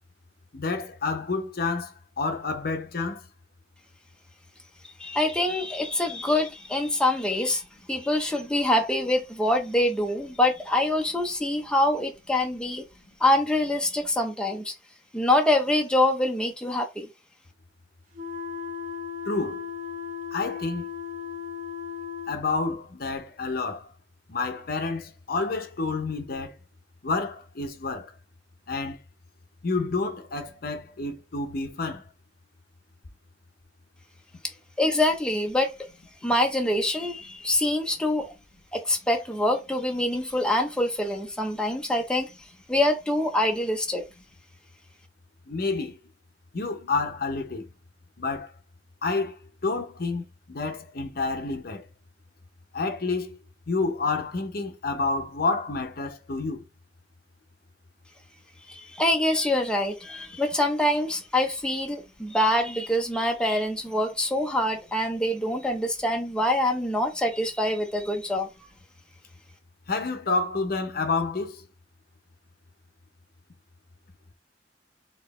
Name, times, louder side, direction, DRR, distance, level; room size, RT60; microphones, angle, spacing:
voice 1, 0.5-3.2 19.3-19.6 20.3-20.9 22.3-23.9 24.3-26.5 27.0-28.1 28.7-29.0 29.6-32.0 45.5-46.0 46.5-47.6 48.2-48.5 49.0-49.4 49.6-51.8 52.7-53.4 53.7-56.6 69.9-71.6, left 3 dB, 55° left, 0.8 m, -29 dB
voice 2, 5.0-7.6 7.9-12.8 13.2-14.7 15.1-17.1 34.8-35.7 36.2-38.3 38.7-42.3 42.7-44.0 58.7-68.5, left 1 dB, 5° left, 0.7 m, -25 dB
sound 1, 18.1-22.4, left 6 dB, 45° right, 0.9 m, -36 dB
4.4 x 2.8 x 3.1 m
head